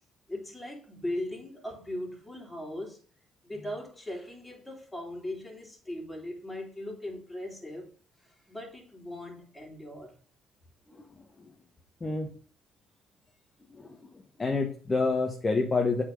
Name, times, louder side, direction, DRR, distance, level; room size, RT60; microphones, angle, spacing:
voice 1, 0.3-3.0 3.4-7.9 8.2-10.2, left 1 dB, 10° left, 3.0 m, -39 dB
voice 2, 12.0-12.3 13.7-14.1 14.4-16.0, left 3 dB, 25° left, 1.2 m, -28 dB
8.1 x 4.4 x 5.3 m
cardioid pair, 100°, 0 cm